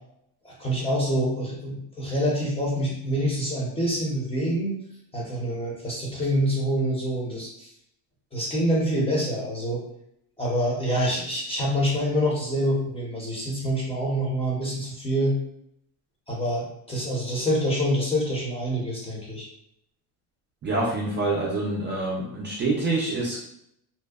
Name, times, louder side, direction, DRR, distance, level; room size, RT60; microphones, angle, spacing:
voice 1, 0.4-4.7 5.1-7.7 8.3-9.8 10.4-15.4 16.3-19.5, equal, 15° left, -4 dB, 0.6 m, -26 dB
voice 2, 20.6-23.4, right 2 dB, 25° right, -5 dB, 0.4 m, -26 dB
2.7 x 2.0 x 2.3 m, 0.75 s
cardioid pair, 130°, 42 cm